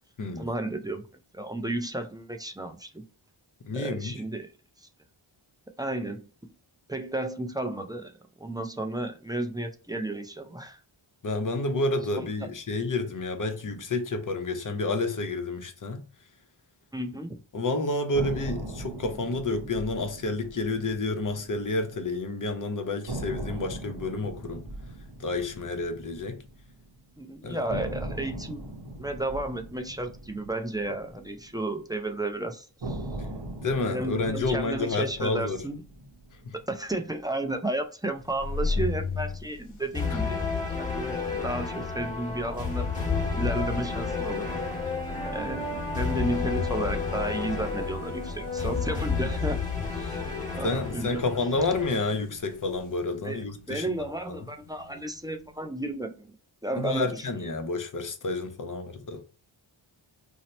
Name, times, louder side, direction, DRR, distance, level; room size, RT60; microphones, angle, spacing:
voice 1, 0.4-1.0 1.3-3.0 3.7-4.5 5.8-6.2 6.9-8.1 8.4-10.8 12.2-12.3 16.9-17.4 27.2-28.6 29.0-33.0 33.9-35.8 36.5-40.5 40.8-44.5 45.3-49.6 49.9-50.2 50.5-51.2 53.2-56.3 56.6-57.3, right 1 dB, 10° right, 0.4 m, -33 dB
voice 2, 3.6-4.1 11.2-16.0 17.5-24.6 25.2-26.4 27.4-27.7 33.6-35.6 36.4-36.5 40.1-40.2 49.8-49.9 50.6-53.9 54.3-54.4 56.8-59.2, left 2 dB, 40° left, 0.7 m, -30 dB
sound 1, 18.1-22.2 22.5-22.6 23.1-27.2 27.7-32.1 32.8-37.2, right 1 dB, 55° right, 0.8 m, -40 dB
sound 2, 38.2-55.6, left 3 dB, 80° left, 0.9 m, -38 dB
sound 3, 39.9-51.9, left 5 dB, 15° left, 1.3 m, -31 dB
2.8 x 2.0 x 4.1 m
cardioid pair, 55°, 49 cm